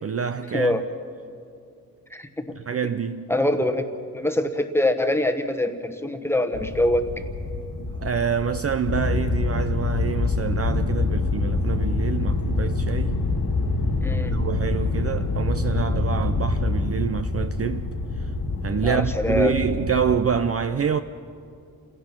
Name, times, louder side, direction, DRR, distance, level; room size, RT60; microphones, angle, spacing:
voice 1, 0.0-0.8 2.6-3.3 7.8-13.2 14.1-17.9 18.2-18.3 18.6-21.0, right 7 dB, 40° right, 0.5 m, -27 dB
voice 2, 0.5-0.8 2.1-2.6 3.3-3.9 4.1-7.0 14.0-14.3 18.8-19.5, left 1 dB, 5° left, 1.1 m, -24 dB
sound 1, 6.5-20.2, left 3 dB, 90° left, 2.2 m, -26 dB
28.5 x 16.5 x 6.0 m
wide cardioid pair, 145°, 37 cm